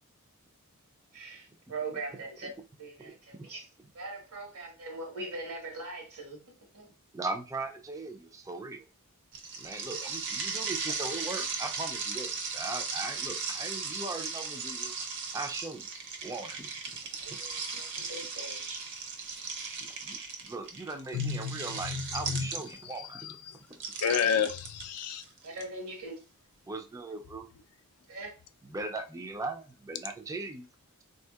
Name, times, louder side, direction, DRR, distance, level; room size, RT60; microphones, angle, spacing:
voice 1, 1.1-2.5 2.8-3.7 3.9-6.4 6.7-6.9 17.2-18.9 25.4-26.2 28.1-28.3, right 2 dB, 85° right, 1.3 m, -41 dB
voice 2, 3.0-3.5 7.1-8.8 9.6-14.9 15.3-15.9 16.2-16.8 17.7-17.8 19.8-20.2 20.4-23.4 23.7-23.8 26.7-27.5 28.7-30.6, right 3 dB, 15° right, 0.3 m, -39 dB
sound 1, 9.3-23.0 23.7-25.6, right 4 dB, 55° right, 0.6 m, -37 dB
voice 3, 21.1-22.5 24.0-25.2, left 7 dB, 90° left, 0.4 m, -30 dB
3.4 x 2.7 x 2.3 m
head